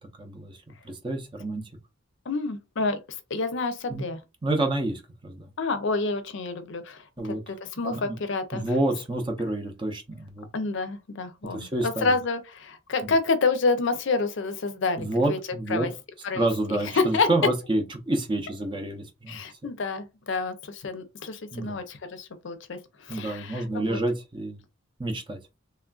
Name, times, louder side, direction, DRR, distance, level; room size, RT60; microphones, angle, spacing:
voice 1, 0.2-0.5 0.8-1.6 3.9-4.1 4.4-5.5 7.2-7.4 7.8-8.2 8.5-10.5 11.5-12.2 13.0-13.1 15.0-15.9 16.3-19.4 21.5-21.8 23.1-24.6 25.0-25.4, right 2 dB, 25° right, 0.6 m, -28 dB
voice 2, 2.3-3.0 3.3-4.2 5.6-8.6 10.5-15.4 15.7-15.9 16.2-17.3 19.3-24.0, left 3 dB, 60° left, 0.5 m, -28 dB
3.2 x 2.4 x 2.3 m
head